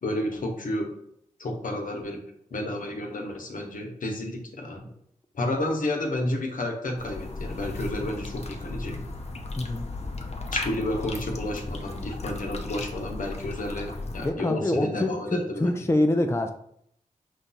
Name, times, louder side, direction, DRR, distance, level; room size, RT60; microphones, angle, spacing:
voice 1, 0.0-0.9 1.4-2.2 2.5-4.9 5.3-9.0 10.3-15.7, left 1 dB, 75° left, 1 dB, 1.0 m, -31 dB
sound 1, 7.0-14.3, left 2 dB, 50° left, 0.7 m, -35 dB
voice 2, 9.6-9.9 14.1-16.5, left 1 dB, 20° left, 6 dB, 0.5 m, -25 dB
5.1 x 2.3 x 4.0 m, 0.70 s
cardioid pair, 45°, 14 cm